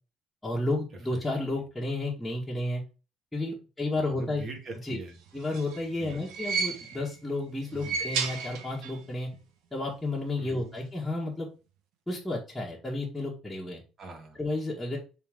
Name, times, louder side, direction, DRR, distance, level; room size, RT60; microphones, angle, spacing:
voice 1, 0.4-2.8 3.3-4.4 4.8-5.0 5.3-9.3 9.7-11.5 12.1-13.8 14.4-15.0, left 2 dB, 5° left, -7 dB, 1.8 m, -32 dB
voice 2, 3.9-5.2 6.0-6.3 7.7-8.0 10.4-10.8 14.0-14.4, right 2 dB, 35° right, 3 dB, 2.0 m, -43 dB
sound 1, 5.3-7.2 7.7-9.1 9.3-9.4 10.5-10.6, right 5 dB, 85° right, 1.3 m, -33 dB
7.0 x 3.9 x 3.7 m, 0.32 s
cardioid pair, 135°, 0 cm